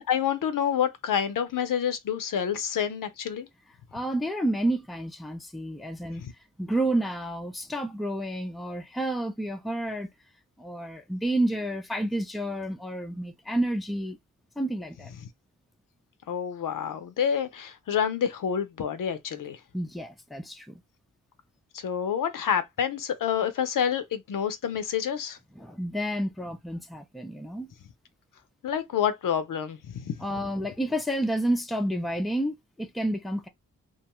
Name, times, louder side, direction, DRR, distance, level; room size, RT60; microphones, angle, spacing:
voice 1, 0.0-3.5 6.2-6.3 16.3-19.6 21.7-25.4 28.6-30.2, left 8 dB, 70° left, 0.7 m, -28 dB
voice 2, 3.9-6.2 6.6-10.1 10.6-14.2 14.6-15.1 19.7-20.8 25.6-27.7 30.2-33.5, right 1 dB, ahead, 0.5 m, -30 dB
2.5 x 2.3 x 3.0 m
cardioid pair, 70°, 33 cm